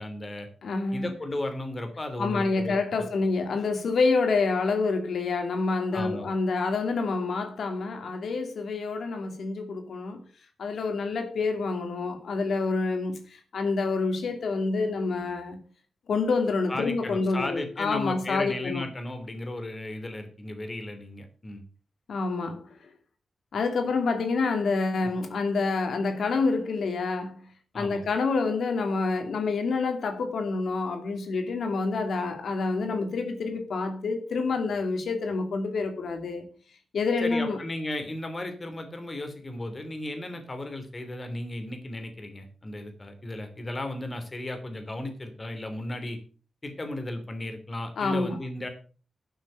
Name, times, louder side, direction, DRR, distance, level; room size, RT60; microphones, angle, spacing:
voice 1, 0.0-0.5 0.9-3.1 5.9-6.3 16.7-21.6 25.0-25.1 27.7-28.0 37.2-46.2 46.6-48.7, left 1 dB, 30° left, 2.9 m, -35 dB
voice 2, 0.6-1.1 2.2-10.2 10.6-15.6 16.1-18.8 22.1-22.6 23.5-27.5 27.7-36.5 36.9-37.6 48.0-48.4, left 4 dB, 90° left, 2.5 m, -27 dB
12.0 x 6.5 x 6.7 m
wide cardioid pair, 105°, 0 cm